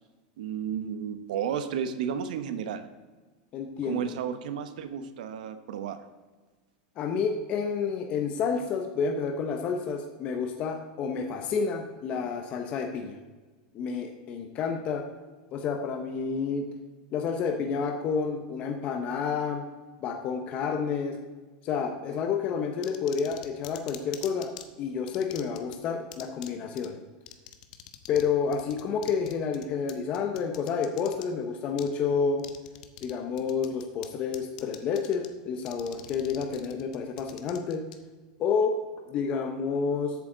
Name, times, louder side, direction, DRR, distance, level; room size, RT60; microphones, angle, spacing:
voice 1, 0.4-2.8 3.9-6.0, right 8 dB, 85° right, 10 dB, 1.0 m, -32 dB
voice 2, 3.5-4.0 7.0-13.2 13.7-15.0 15.5-16.7 17.1-19.6 20.0-21.2 21.6-24.5 24.8-27.0 28.1-32.4 33.0-37.8 38.4-38.7 39.1-40.1, left 6 dB, 30° left, 3 dB, 0.9 m, -29 dB
sound 1, 22.8-24.6 25.1-25.8 26.1-26.5 26.8-26.9 27.3-28.3 28.5-31.2 31.8-31.9 32.4-33.1 33.4-34.1 34.3-35.3 35.6-38.0, left 12 dB, 65° left, 1.0 m, -44 dB
13.5 x 8.3 x 3.9 m, 1.3 s
supercardioid pair, 175°, 4 cm